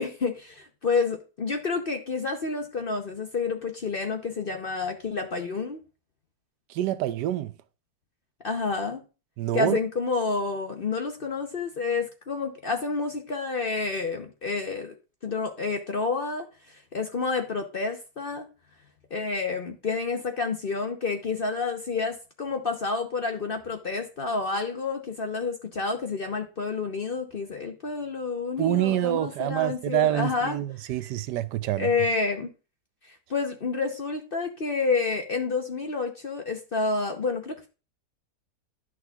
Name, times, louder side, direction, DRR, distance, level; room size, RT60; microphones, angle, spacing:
voice 1, 0.0-5.8 8.4-9.0 9.5-14.9 15.2-18.5 19.1-30.6 31.8-32.5 33.0-37.7, left 4 dB, 45° left, 0.7 m, -29 dB
voice 2, 6.7-7.5 9.4-9.8 28.6-31.9, right 14 dB, 85° right, 1.2 m, -26 dB
11.0 x 6.2 x 2.3 m
omnidirectional pair, 1.8 m